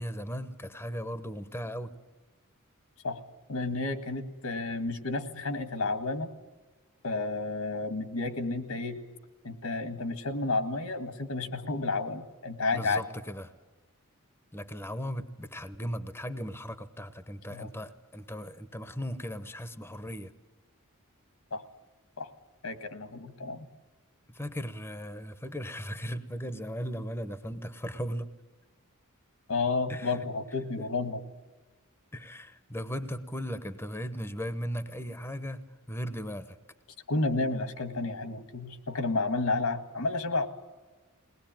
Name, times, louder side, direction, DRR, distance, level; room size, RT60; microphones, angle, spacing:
voice 1, 0.0-1.9 12.7-13.5 14.5-20.3 24.3-28.3 29.9-30.2 30.8-30.9 32.1-36.6, equal, 10° left, 12 dB, 0.9 m, -37 dB
voice 2, 3.5-6.3 7.0-9.0 9.4-13.0 17.5-17.7 21.5-21.6 22.2-22.3 22.6-23.7 29.5-31.2 37.1-40.5, left 3 dB, 75° left, 10 dB, 1.7 m, -31 dB
21.5 x 19.0 x 9.0 m, 1.2 s
head